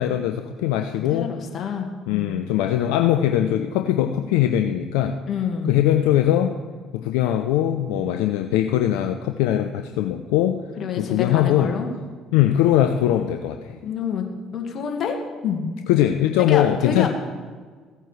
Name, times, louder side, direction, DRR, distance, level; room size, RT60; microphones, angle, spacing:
voice 1, 0.0-1.3 2.1-5.2 5.7-6.6 6.9-10.6 11.0-11.7 12.3-13.8 15.9-17.1, left 11 dB, 75° left, 6 dB, 0.5 m, -21 dB
voice 2, 1.1-2.3 5.3-5.8 10.8-11.9 13.8-14.2 14.5-15.2 15.4-15.7 16.5-17.1, left 7 dB, 50° left, 3 dB, 1.7 m, -27 dB
16.0 x 8.9 x 3.2 m, 1.5 s
hypercardioid pair, 55°, 0 cm